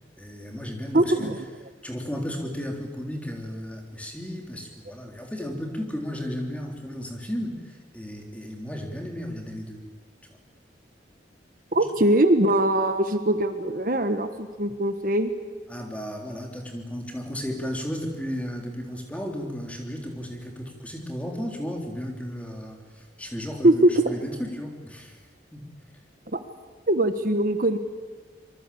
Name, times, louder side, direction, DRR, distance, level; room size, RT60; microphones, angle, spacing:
voice 1, 0.2-1.3 1.8-9.8 11.7-11.9 15.7-25.2 25.5-25.7, equal, 10° left, 2 dB, 3.5 m, -34 dB
voice 2, 0.9-1.4 11.7-15.3 23.6-23.9 26.9-27.8, right 1 dB, 50° right, 8 dB, 1.3 m, -21 dB
25.5 x 23.5 x 8.6 m, 1.4 s
head